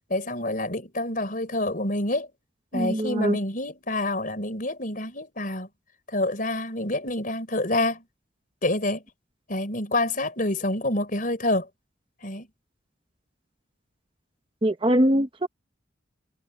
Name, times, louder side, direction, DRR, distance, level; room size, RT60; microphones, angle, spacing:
voice 1, 0.1-2.3 2.7-5.7 6.1-8.0 8.6-9.0 9.5-11.7 12.2-12.5, left 1 dB, 45° left, 4.6 m, -27 dB
voice 2, 2.7-3.4 14.6-15.5, right 1 dB, 25° right, 0.9 m, -22 dB
head